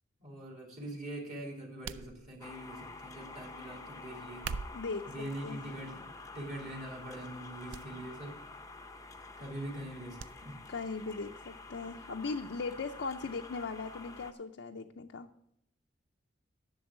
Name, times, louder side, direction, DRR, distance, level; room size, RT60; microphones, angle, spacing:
voice 1, 0.2-4.5 5.1-6.0 6.3-8.4 9.4-10.6, right 1 dB, 40° right, -1 dB, 2.5 m, -43 dB
sound 1, 1.8-2.6 4.3-5.0 5.8-6.1 6.6-6.7 7.7-7.9 8.2-8.3 10.2-10.3 10.7-10.8, right 6 dB, 80° right, 0.4 m, -42 dB
sound 2, 2.4-14.3, left 3 dB, 15° left, 0.6 m, -49 dB
voice 2, 4.7-5.6 10.7-15.3, left 4 dB, 70° left, 3 dB, 0.5 m, -39 dB
11.0 x 6.9 x 6.0 m, 0.77 s
head